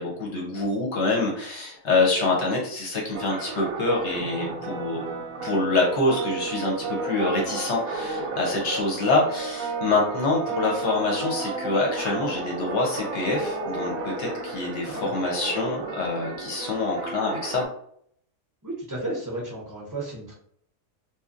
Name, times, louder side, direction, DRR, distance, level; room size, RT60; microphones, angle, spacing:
voice 1, 0.0-5.0 5.4-17.7, left 2 dB, 55° left, -2 dB, 0.9 m, -26 dB
sound 1, 3.1-17.7, right 3 dB, 70° right, 0.9 m, -33 dB
voice 2, 18.6-20.3, right 2 dB, 20° right, -5 dB, 0.5 m, -33 dB
2.9 x 2.2 x 2.5 m, 0.65 s
omnidirectional pair, 1.7 m